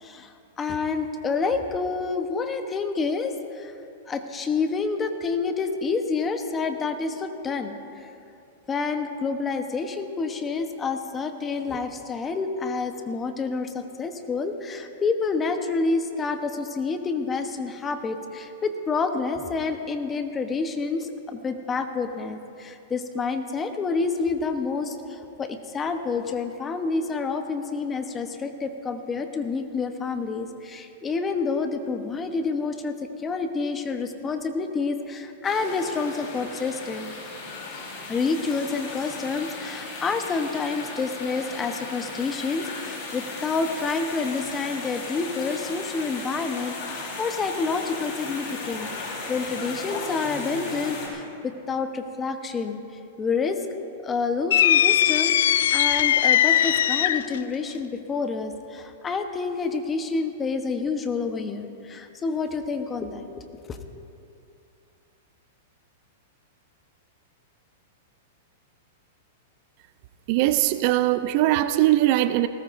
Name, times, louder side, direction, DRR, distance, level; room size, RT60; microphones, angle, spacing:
voice 1, 0.0-3.7 4.1-8.1 8.7-37.1 38.1-52.8 53.2-53.6 54.0-63.4 63.7-63.8, left 4 dB, 20° left, 7 dB, 1.0 m, -28 dB
sound 1, 35.4-51.1, left 3 dB, 45° left, 4.0 m, -36 dB
sound 2, 54.5-57.4, left 11 dB, 75° left, 0.3 m, -20 dB
voice 2, 70.3-72.5, right 15 dB, 50° right, 12 dB, 0.4 m, -21 dB
20.0 x 17.5 x 2.6 m, 2.6 s
hypercardioid pair, 135°, 0 cm